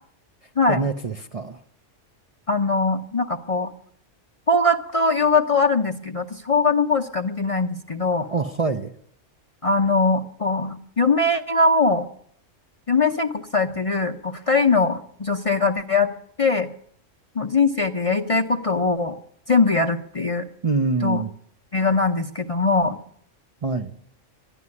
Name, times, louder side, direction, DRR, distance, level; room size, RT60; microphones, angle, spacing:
voice 1, 0.7-1.6 8.3-8.9 20.6-21.3 23.6-24.0, right 4 dB, 40° right, 5 dB, 0.6 m, -25 dB
voice 2, 2.5-3.7 4.5-8.3 9.6-12.1 12.9-16.1 16.4-16.7 17.3-19.2 19.5-20.5 21.0-21.2 21.7-23.0, left 3 dB, 35° left, 3 dB, 0.6 m, -21 dB
12.0 x 11.0 x 9.6 m, 0.65 s
omnidirectional pair, 1.3 m